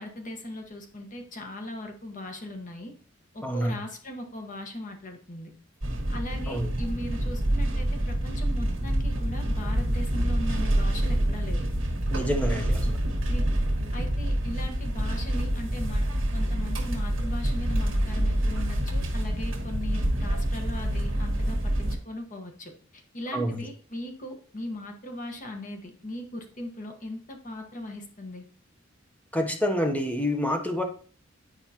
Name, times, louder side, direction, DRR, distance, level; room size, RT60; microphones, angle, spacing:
voice 1, 0.0-2.9 3.3-5.5 6.1-11.7 13.3-13.4 13.9-16.0 16.3-28.4, left 1 dB, 40° left, 4 dB, 1.3 m, -39 dB
voice 2, 3.4-3.7 6.5-6.7 12.1-13.0 23.3-23.6 29.3-30.8, equal, 10° left, 4 dB, 0.8 m, -27 dB
sound 1, 5.8-22.0, right 1 dB, 70° right, 1.5 m, -27 dB
10.0 x 4.8 x 2.9 m, 0.41 s
head